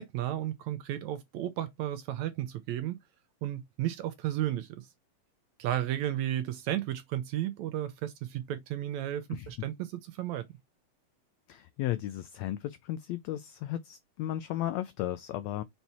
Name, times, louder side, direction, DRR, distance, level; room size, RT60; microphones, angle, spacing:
voice 1, 0.0-3.0 3.4-4.9 5.6-10.5, right 12 dB, 75° right, 1.7 m, -33 dB
voice 2, 11.5-15.6, left 13 dB, 90° left, 1.5 m, -35 dB
5.6 x 4.4 x 4.1 m
omnidirectional pair, 3.7 m